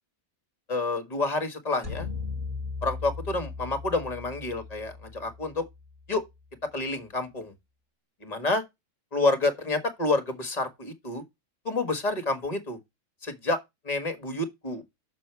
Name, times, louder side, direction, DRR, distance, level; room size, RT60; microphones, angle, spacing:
voice 1, 0.7-2.1 2.8-5.6 6.1-6.2 6.7-7.5 8.2-8.6 9.1-11.2 11.6-12.8 13.2-13.6 13.8-14.8, left 2 dB, 30° left, 1.6 m, -28 dB
sound 1, 1.8-6.2, left 4 dB, 25° right, 1.8 m, -38 dB
6.7 x 6.3 x 4.5 m
omnidirectional pair, 1.4 m